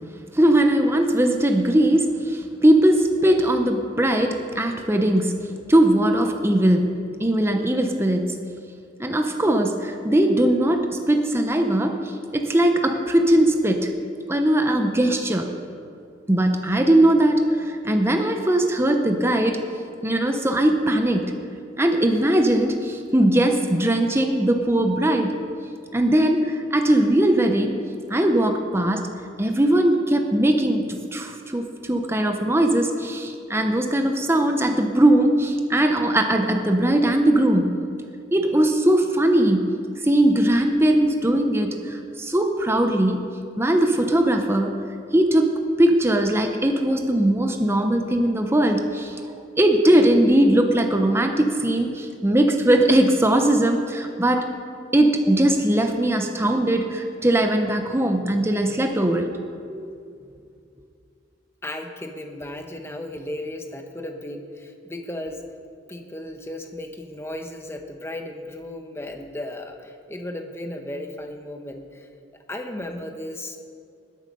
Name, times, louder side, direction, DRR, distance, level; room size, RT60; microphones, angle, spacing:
voice 1, 0.3-5.4 5.7-6.9 7.2-8.4 9.0-13.9 14.3-15.5 16.3-19.6 20.0-21.3 21.8-25.3 25.9-27.8 28.1-29.1 29.4-37.7 38.3-39.7 40.0-43.2 43.6-44.8 45.1-49.2 49.6-54.5 54.9-59.3 59.7-59.8, right 1 dB, 15° right, 5 dB, 0.8 m, -20 dB
voice 2, 61.6-65.4 65.9-72.1 72.5-73.6, left 1 dB, 15° left, 4 dB, 1.0 m, -35 dB
20.0 x 7.7 x 5.4 m, 2.4 s
head